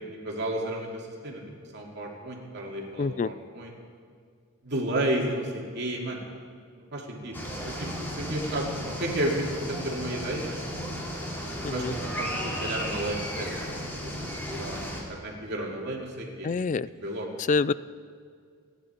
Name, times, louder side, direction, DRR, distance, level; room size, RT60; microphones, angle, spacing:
voice 1, 0.2-1.4 1.7-3.7 4.6-6.2 6.8-7.4 7.6-8.7 9.0-10.6 11.7-13.5 14.0-14.2 14.5-16.5 17.0-17.3, right 1 dB, 50° right, -1 dB, 2.6 m, -32 dB
voice 2, 3.0-3.3 11.6-11.9 16.4-16.9 17.5-17.7, left 4 dB, 35° left, 18 dB, 0.3 m, -26 dB
sound 1, 7.3-15.0, equal, 10° left, 2.7 m, -34 dB
28.0 x 10.0 x 4.5 m, 2.1 s
head